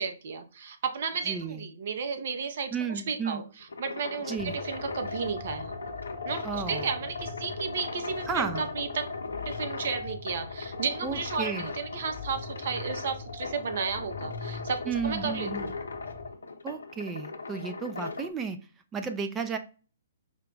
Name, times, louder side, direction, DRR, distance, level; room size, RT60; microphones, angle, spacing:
voice 1, 0.0-3.4 3.8-5.7 6.3-9.1 9.5-15.7, right 5 dB, 55° right, 7 dB, 0.7 m, -33 dB
voice 2, 1.3-1.6 2.7-3.4 4.3-4.6 6.4-6.9 8.3-8.7 11.0-11.7 14.9-15.7 16.6-18.6 18.9-19.6, right 6 dB, 15° right, 6 dB, 0.4 m, -33 dB
sound 1, 3.5-18.3, left 4 dB, 75° left, 0.6 m, -38 dB
sound 2, 4.4-16.3, left 3 dB, 35° left, 0.9 m, -42 dB
4.9 x 2.2 x 3.8 m, 0.36 s
figure-of-eight pair, 125°, 0 cm